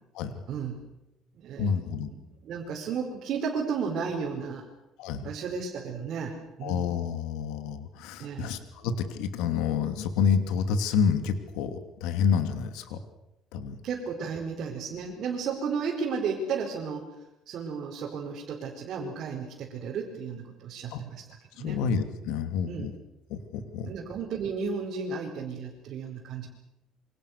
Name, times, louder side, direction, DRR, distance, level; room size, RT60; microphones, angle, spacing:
voice 1, 0.5-0.8 1.3-1.8 2.1-4.6 5.2-6.9 8.2-8.5 13.8-17.1 17.5-21.2 21.5-21.9 22.7-22.9 23.6-26.5, right 5 dB, 45° right, -2 dB, 4.9 m, -33 dB
voice 2, 1.6-2.1 5.0-5.3 6.6-13.0 13.5-13.8 20.9-21.0 21.6-22.9 23.3-23.9, left 6 dB, 80° left, 9 dB, 2.8 m, -28 dB
28.5 x 26.0 x 6.8 m, 0.92 s
cardioid pair, 170°, 0 cm